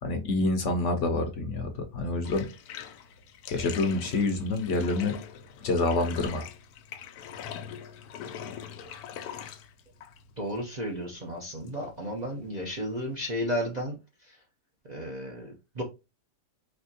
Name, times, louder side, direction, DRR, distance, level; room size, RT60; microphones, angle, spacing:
voice 1, 0.0-2.5 3.5-5.2 5.6-6.5, left 2 dB, 60° left, 0.9 m, -27 dB
Bathtub (filling or washing), 2.2-13.8, left 8 dB, 90° left, 1.1 m, -43 dB
voice 2, 10.4-14.4 14.9-15.8, equal, 45° right, 0.6 m, -33 dB
4.3 x 2.9 x 2.7 m
omnidirectional pair, 1.6 m